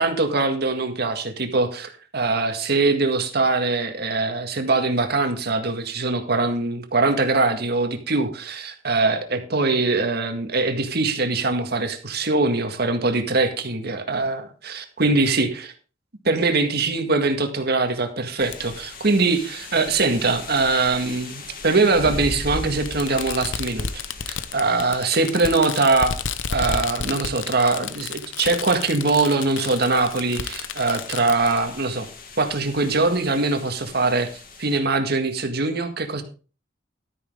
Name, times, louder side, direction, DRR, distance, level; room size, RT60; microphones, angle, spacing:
voice 1, 0.0-15.7 16.3-26.1 26.5-32.1 32.4-34.3 34.6-36.2, right 3 dB, 60° right, 6 dB, 1.8 m, -22 dB
sound 1, 18.4-34.8, left 2 dB, 50° left, 2.3 m, -39 dB
Fireworks, 18.5-18.6 19.7-19.8 21.1-21.2 22.9-31.6, left 6 dB, 85° left, 0.8 m, -31 dB
12.5 x 9.3 x 3.7 m, 0.35 s
head